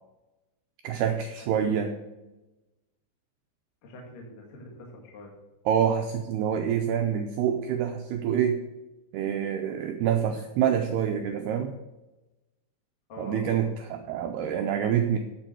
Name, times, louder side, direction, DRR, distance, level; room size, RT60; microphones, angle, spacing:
voice 1, 0.8-1.9 5.7-8.6 9.1-11.7 13.2-15.2, right 8 dB, 85° right, 5 dB, 2.3 m, -26 dB
voice 2, 3.8-5.3 13.1-13.8, left 1 dB, 55° left, -2 dB, 3.4 m, -45 dB
16.5 x 7.2 x 4.5 m, 1.1 s
omnidirectional pair, 5.5 m